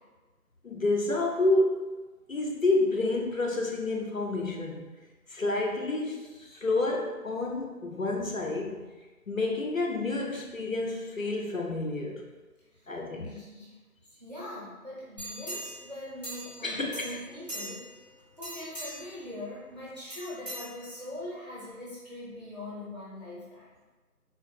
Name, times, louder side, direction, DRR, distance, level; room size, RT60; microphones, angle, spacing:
voice 1, 0.6-1.9 2.3-4.8 5.3-8.8 9.3-12.2 12.9-13.3 16.6-17.2, left 2 dB, 60° left, 0 dB, 0.6 m, -29 dB
voice 2, 13.1-13.7 14.1-17.9 18.4-23.7, left 1 dB, 25° right, -9 dB, 0.9 m, -42 dB
sound 1, 15.2-16.6 16.9-18.0 18.4-19.2 20.1-21.2 21.7-21.8, equal, 25° left, 1.3 m, -41 dB
3.9 x 3.2 x 2.4 m, 1.2 s
figure-of-eight pair, 165°, 47 cm